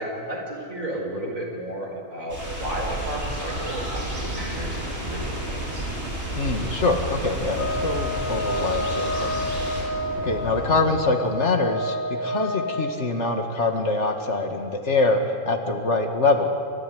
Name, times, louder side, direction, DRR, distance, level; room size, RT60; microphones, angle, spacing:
voice 1, 0.0-5.9 9.8-9.9, right 1 dB, 90° right, -1 dB, 5.4 m, -33 dB
sound 1, 2.3-9.8, equal, 70° right, 8.1 m, -33 dB
sound 2, 2.6-11.0, right 2 dB, 50° right, 2.3 m, -34 dB
voice 2, 6.4-9.4 10.2-16.5, left 3 dB, 60° left, 4 dB, 2.3 m, -24 dB
sound 3, 7.5-13.0, left 1 dB, 85° left, 2.2 m, -29 dB
28.5 x 14.5 x 9.6 m, 2.6 s
omnidirectional pair, 1.4 m